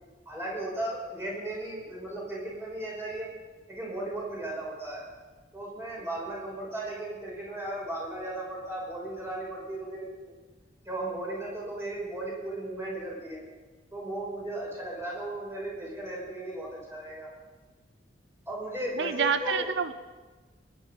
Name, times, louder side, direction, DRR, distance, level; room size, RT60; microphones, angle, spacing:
voice 1, 0.3-3.3 3.7-5.0 5.5-10.1 10.9-13.4 13.9-17.3 18.5-19.7, right 1 dB, 15° right, -4 dB, 5.2 m, -36 dB
voice 2, 19.0-19.9, right 6 dB, 85° right, 11 dB, 0.6 m, -27 dB
23.0 x 11.0 x 5.3 m, 1.3 s
head